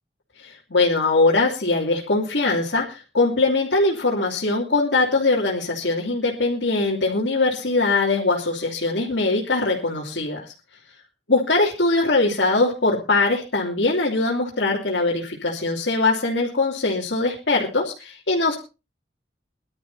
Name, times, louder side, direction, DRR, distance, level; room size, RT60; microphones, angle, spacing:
voice 1, 0.4-10.5 11.3-18.6, left 3 dB, 85° left, -5 dB, 3.1 m, -21 dB
22.5 x 12.0 x 2.8 m, 0.30 s
head